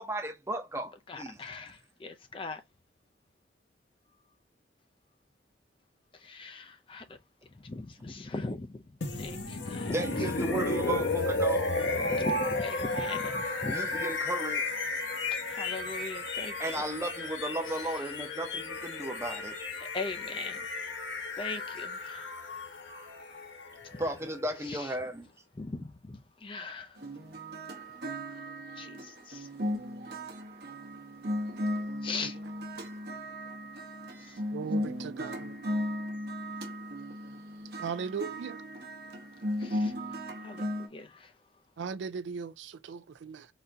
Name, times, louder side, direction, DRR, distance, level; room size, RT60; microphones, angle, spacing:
voice 1, 0.0-1.5 9.9-11.8 13.7-14.8 16.6-19.6 20.3-20.4 24.0-25.3, right 1 dB, 15° right, 0.7 m, -35 dB
voice 2, 1.1-2.6 6.2-7.0 7.6-8.8 9.1-10.0 12.0-13.8 15.5-16.5 19.8-20.6 21.4-22.3 23.0-23.1 24.7-24.9 25.6-27.0 28.3-28.4 28.8-29.5 32.0-32.4 34.2-34.4 39.6-40.7 40.9-41.3, left 3 dB, 25° left, 0.4 m, -40 dB
sound 1, 9.0-24.9, left 2 dB, 65° left, 1.0 m, -33 dB
sound 2, 27.0-40.9, equal, 55° right, 0.9 m, -36 dB
voice 3, 34.5-35.5 37.8-38.6 41.8-43.5, right 6 dB, 70° right, 0.4 m, -38 dB
4.0 x 2.7 x 3.3 m
head